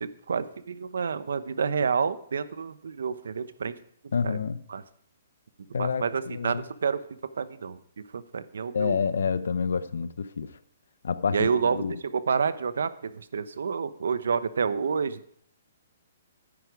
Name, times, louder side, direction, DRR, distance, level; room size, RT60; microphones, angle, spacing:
voice 1, 0.0-3.8 4.2-4.4 4.7-4.8 5.8-7.1 7.4-7.8 8.1-9.0 11.3-15.4, right 6 dB, 80° right, 0.8 m, -29 dB
voice 2, 4.1-4.6 5.7-6.6 8.7-10.5 11.0-12.0, left 6 dB, 90° left, 0.8 m, -28 dB
12.0 x 9.8 x 4.7 m
hypercardioid pair, 175°, 0 cm